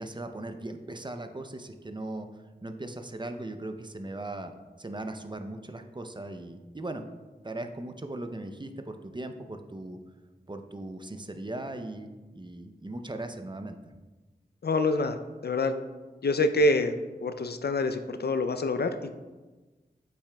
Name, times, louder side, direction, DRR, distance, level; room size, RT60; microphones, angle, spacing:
voice 1, 0.0-4.5 4.8-7.0 7.4-10.0 10.5-13.9, right 2 dB, 25° right, 6 dB, 0.5 m, -38 dB
voice 2, 14.6-15.2 15.4-15.7 16.2-16.9 17.2-19.2, left 2 dB, 70° left, 9 dB, 0.5 m, -26 dB
8.5 x 5.7 x 2.3 m, 1.2 s
wide cardioid pair, 55°, 17 cm